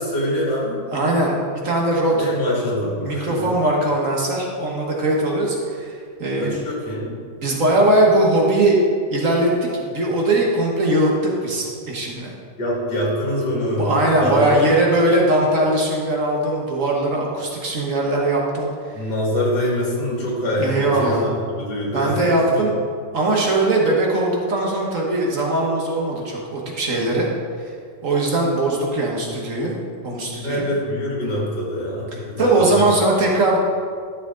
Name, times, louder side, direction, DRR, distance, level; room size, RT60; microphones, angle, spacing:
voice 1, 0.0-0.8 2.1-3.5 6.3-7.2 12.6-14.6 18.9-21.2 21.5-22.6 30.4-32.8, left 1 dB, 75° left, -4 dB, 2.8 m, -24 dB
voice 2, 0.9-2.3 3.0-6.6 7.4-8.8 9.1-11.1 11.4-12.3 13.8-19.0 20.5-21.3 21.9-22.7 23.1-27.3 27.6-27.7 28.0-29.8 30.0-30.7 32.4-33.6, right 1 dB, 50° right, -2 dB, 1.6 m, -20 dB
12.5 x 6.7 x 3.8 m, 2.2 s
omnidirectional pair, 1.9 m